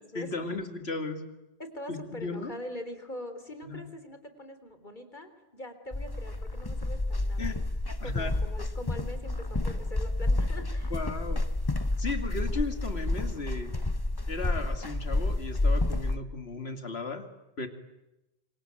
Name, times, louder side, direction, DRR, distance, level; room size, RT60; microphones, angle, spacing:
voice 1, 0.1-1.3 1.9-2.5 3.6-3.9 7.4-8.4 10.9-11.4 12.0-13.7 14.3-17.3 17.6-17.7, left 3 dB, 75° left, 8 dB, 2.8 m, -36 dB
voice 2, 1.6-7.6 8.0-10.9, left 1 dB, 50° left, 9 dB, 3.9 m, -43 dB
sound 1, 5.9-16.2, left 2 dB, 20° left, 1.2 m, -30 dB
27.0 x 24.5 x 9.0 m, 0.95 s
omnidirectional pair, 1.1 m